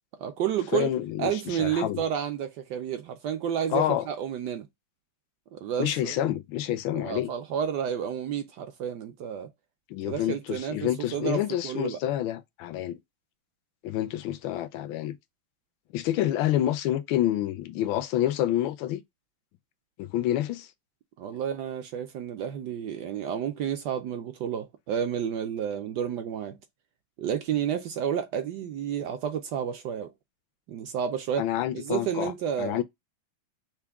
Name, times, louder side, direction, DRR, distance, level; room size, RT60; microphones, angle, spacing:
voice 1, 0.2-0.9 1.2-4.7 5.5-6.3 6.9-9.5 10.0-12.0 21.2-26.6 27.2-30.1 30.7-31.4 31.7-32.8, right 8 dB, 70° right, 1.0 m, -31 dB
voice 2, 0.7-2.0 3.7-4.1 5.8-7.3 9.9-13.0 13.8-15.2 15.9-19.0 20.0-20.7 31.4-32.3 32.6-32.8, left 12 dB, 80° left, 1.3 m, -28 dB
5.7 x 2.2 x 3.4 m
omnidirectional pair, 2.2 m